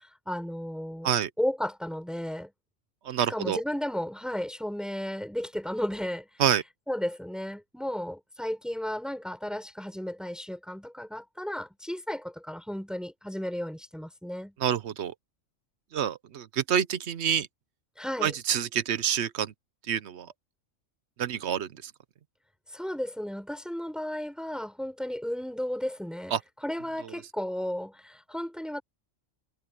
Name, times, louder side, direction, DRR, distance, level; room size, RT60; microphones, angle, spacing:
voice 1, 0.0-1.1 1.4-2.5 3.3-6.4 6.9-14.5 18.0-18.3 22.7-26.3 26.6-28.8, equal, ahead, 6.6 m, -34 dB
voice 2, 3.0-3.6 6.4-6.6 14.6-15.1 15.9-17.5 18.2-19.5 19.9-20.3 21.2-21.9 26.3-26.4, right 9 dB, 60° right, 0.9 m, -27 dB
omnidirectional pair, 1.4 m